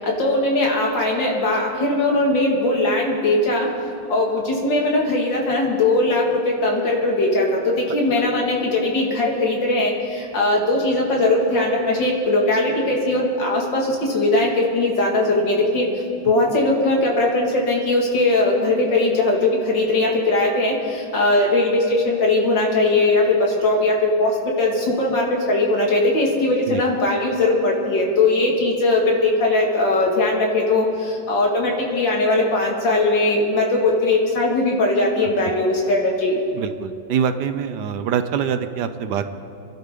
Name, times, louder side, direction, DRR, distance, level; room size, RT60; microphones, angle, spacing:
voice 1, 0.0-3.7 4.1-15.9 16.2-36.4, left 2 dB, 65° left, -1 dB, 2.8 m, -20 dB
voice 2, 36.5-39.3, right 7 dB, 70° right, 9 dB, 1.1 m, -24 dB
26.0 x 11.5 x 3.7 m, 2.6 s
omnidirectional pair, 2.2 m